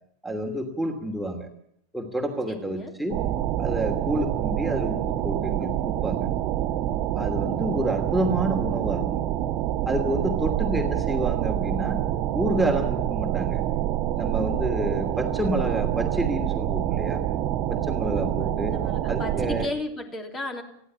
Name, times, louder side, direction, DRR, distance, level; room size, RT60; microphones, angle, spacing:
voice 1, 0.2-1.5 1.9-3.2 3.6-6.3 7.2-9.1 9.9-12.0 12.3-13.6 14.2-17.2 17.7-18.7 19.1-19.7, right 1 dB, 5° right, 1 dB, 2.8 m, -28 dB
voice 2, 2.5-2.9 18.4-20.6, left 2 dB, 25° left, 4 dB, 3.3 m, -35 dB
sound 1, 3.1-19.7, right 12 dB, 40° right, 1.5 m, -27 dB
21.5 x 15.0 x 8.7 m, 0.72 s
figure-of-eight pair, 90°, 0 cm